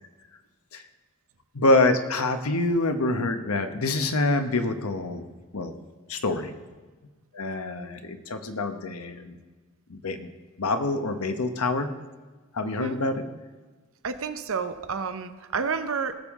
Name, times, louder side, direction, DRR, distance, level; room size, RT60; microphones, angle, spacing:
voice 1, 1.5-5.2 5.5-5.7 6.1-6.5 7.3-9.4 9.9-10.3 10.6-11.9 12.5-13.2, left 2 dB, 85° left, 8 dB, 1.0 m, -26 dB
voice 2, 12.6-13.0 14.0-16.1, right 5 dB, 70° right, 10 dB, 0.8 m, -30 dB
18.5 x 7.2 x 3.7 m, 1.4 s
head